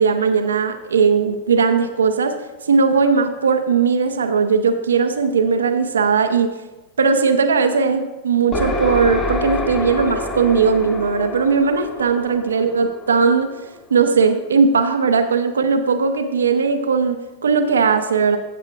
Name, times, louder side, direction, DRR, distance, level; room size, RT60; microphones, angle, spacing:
voice 1, 0.0-2.4 2.6-6.5 7.0-13.5 13.9-18.4, right 5 dB, 80° right, 7 dB, 0.8 m, -18 dB
sound 1, 8.5-14.1, left 2 dB, 35° left, 2.0 m, -27 dB
15.0 x 7.9 x 2.4 m, 1.1 s
figure-of-eight pair, 95°, 0 cm